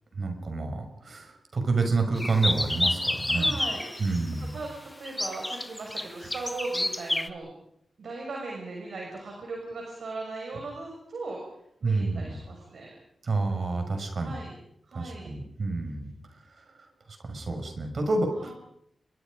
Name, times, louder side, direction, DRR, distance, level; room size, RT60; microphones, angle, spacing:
voice 1, 0.2-3.6 4.0-4.6 11.8-12.4 13.2-14.4 14.9-16.1 16.6-16.7 17.2-18.5, right 3 dB, 60° right, 5 dB, 6.2 m, -29 dB
sound 1, 2.1-4.3 5.1-7.3, left 1 dB, 20° left, 1.7 m, -29 dB
voice 2, 3.3-4.2 4.5-4.7 5.0-7.5 8.0-11.4 11.8-12.9 14.2-14.5 14.9-15.3 18.4-18.5, right 3 dB, 75° right, 0 dB, 6.7 m, -38 dB
30.0 x 23.0 x 5.3 m, 0.75 s
cardioid pair, 50°, 0 cm